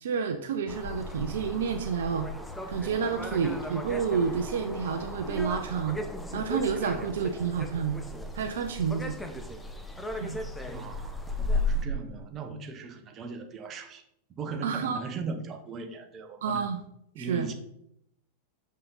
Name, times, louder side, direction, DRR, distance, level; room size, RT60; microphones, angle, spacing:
voice 1, 0.0-2.3 2.7-6.0 6.3-8.0 8.3-9.2 10.2-10.4 14.6-15.0 16.4-16.8 17.2-17.5, right 6 dB, 60° right, 7 dB, 0.5 m, -29 dB
sound 1, 0.7-11.9, left 2 dB, 5° left, 0.8 m, -35 dB
voice 2, 10.7-14.0 14.3-16.6 17.1-17.5, right 4 dB, 30° right, 6 dB, 1.0 m, -39 dB
6.7 x 5.6 x 4.0 m, 0.76 s
figure-of-eight pair, 90°, 0 cm